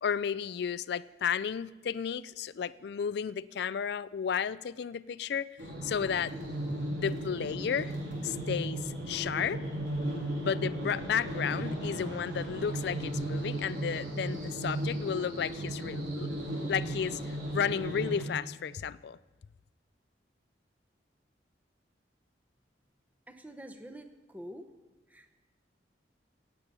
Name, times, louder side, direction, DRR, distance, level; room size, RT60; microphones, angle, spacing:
voice 1, 0.0-5.5 5.8-6.3 6.9-7.9 8.2-9.6 10.4-16.3 16.7-19.2, left 7 dB, 60° left, 18 dB, 0.4 m, -33 dB
sound 1, 5.6-18.2, right 1 dB, 80° right, 3.4 m, -35 dB
voice 2, 23.3-24.7 25.1-25.4, equal, 10° right, 7 dB, 0.8 m, -46 dB
17.5 x 8.4 x 5.4 m, 1.2 s
head